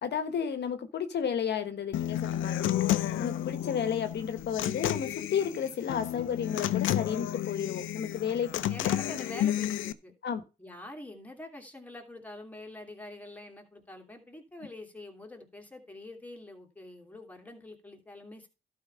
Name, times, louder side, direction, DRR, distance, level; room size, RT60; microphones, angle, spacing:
voice 1, 0.0-8.6 9.0-9.1 10.2-10.4, left 7 dB, 60° left, 1.2 m, -32 dB
Human voice / Acoustic guitar, 1.9-9.9, left 12 dB, 80° left, 0.6 m, -31 dB
voice 2, 8.7-10.1 10.6-18.5, left 1 dB, 10° left, 2.7 m, -45 dB
12.0 x 4.7 x 5.6 m
cardioid pair, 90°, 20 cm